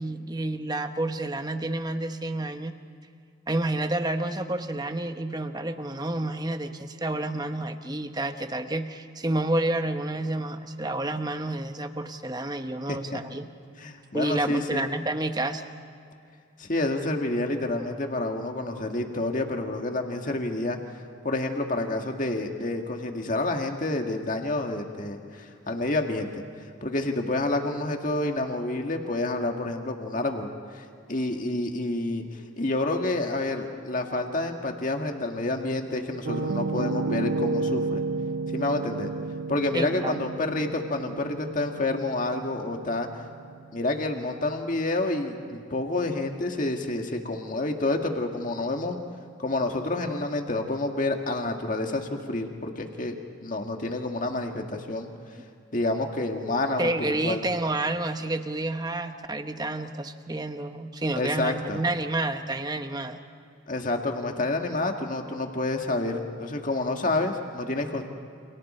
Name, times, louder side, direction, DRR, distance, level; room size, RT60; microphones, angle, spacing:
voice 1, 0.0-2.7 3.5-13.5 14.1-15.6 39.7-40.2 56.8-63.2, right 2 dB, 20° right, 8 dB, 1.0 m, -29 dB
voice 2, 12.9-13.2 13.8-14.8 16.6-20.8 21.2-26.4 26.8-32.2 32.6-38.0 38.5-39.1 39.5-43.1 43.7-49.0 49.4-53.1 53.4-55.1 55.7-57.4 61.2-61.8 63.7-68.0, left 2 dB, 40° left, 3 dB, 1.8 m, -29 dB
Piano, 36.3-44.1, right 3 dB, 65° right, 0.6 m, -32 dB
29.0 x 28.0 x 4.4 m, 2.5 s
head